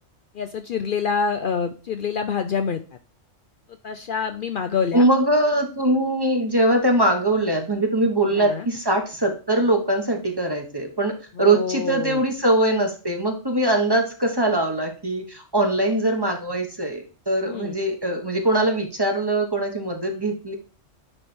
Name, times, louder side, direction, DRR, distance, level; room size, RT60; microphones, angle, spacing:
voice 1, 0.3-2.8 3.8-5.1 8.3-8.7 11.4-12.2 17.4-17.8, left 6 dB, 55° left, 7 dB, 0.7 m, -26 dB
voice 2, 4.9-20.5, right 1 dB, 20° right, 3 dB, 1.1 m, -22 dB
9.8 x 3.3 x 4.3 m, 0.36 s
omnidirectional pair, 1.2 m